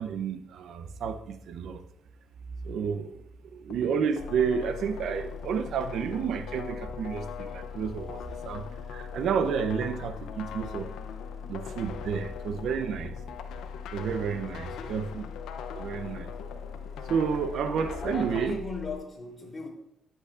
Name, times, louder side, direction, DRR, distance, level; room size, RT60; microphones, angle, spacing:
voice 1, 0.0-1.8 2.6-10.9 11.5-13.2 13.9-15.2 15.7-16.7 17.1-18.6, right 6 dB, 70° right, 0.7 m, -31 dB
sound 1, 3.7-18.5, left 7 dB, 85° left, 0.6 m, -43 dB
sound 2, 4.2-19.0, left 6 dB, 60° left, 2.5 m, -42 dB
voice 2, 14.4-15.0 18.0-19.7, left 4 dB, 30° left, 3.4 m, -38 dB
12.0 x 8.1 x 2.5 m
cardioid pair, 90°, 0 cm